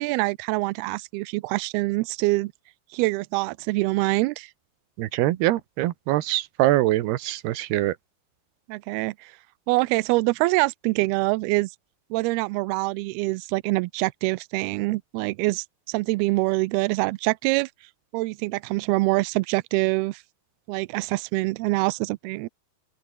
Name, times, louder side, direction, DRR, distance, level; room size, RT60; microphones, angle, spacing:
voice 1, 0.0-2.5 2.9-4.5 8.7-9.4 9.7-11.7 12.1-17.7 18.1-20.2 20.7-22.5, right 22 dB, 90° right, 2.2 m, -25 dB
voice 2, 5.0-8.0, right 16 dB, 70° right, 2.9 m, -23 dB
open air
omnidirectional pair, 5.2 m